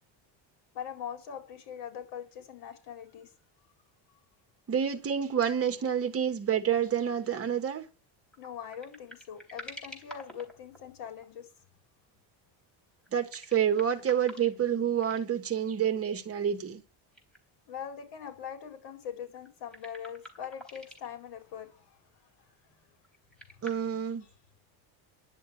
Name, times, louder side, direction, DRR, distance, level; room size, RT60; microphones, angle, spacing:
voice 1, 0.7-3.3 8.4-11.5 17.7-22.0, left 8 dB, 65° left, 4.4 m, -42 dB
voice 2, 4.7-7.8 13.1-16.8 23.6-24.2, right 8 dB, 30° right, 1.5 m, -28 dB
sound 1, 8.3-11.2 13.0-14.7 15.0-15.2 16.5-16.6 17.1-17.4 17.7-17.8 19.0-21.1 23.0-23.7, equal, ahead, 3.8 m, -48 dB
11.0 x 7.0 x 9.1 m
cardioid pair, 150°, 45 cm